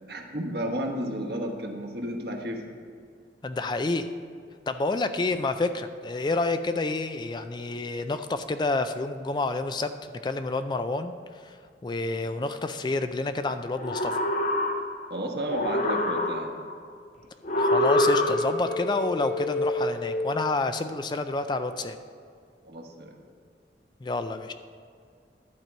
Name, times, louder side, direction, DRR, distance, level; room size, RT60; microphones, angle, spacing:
voice 1, 0.1-2.6 15.1-16.5 22.6-23.1, right 1 dB, 60° right, 2 dB, 1.2 m, -32 dB
voice 2, 3.4-4.1 4.7-11.6 11.8-14.2 17.6-22.0 24.0-24.5, left 3 dB, 25° left, 9 dB, 0.3 m, -29 dB
sound 1, 13.7-15.1 15.5-16.7 17.4-18.7, left 1 dB, 45° left, 0.7 m, -25 dB
sound 2, 17.9-21.1, left 2 dB, 85° left, 0.7 m, -31 dB
12.0 x 4.5 x 7.9 m, 2.3 s
head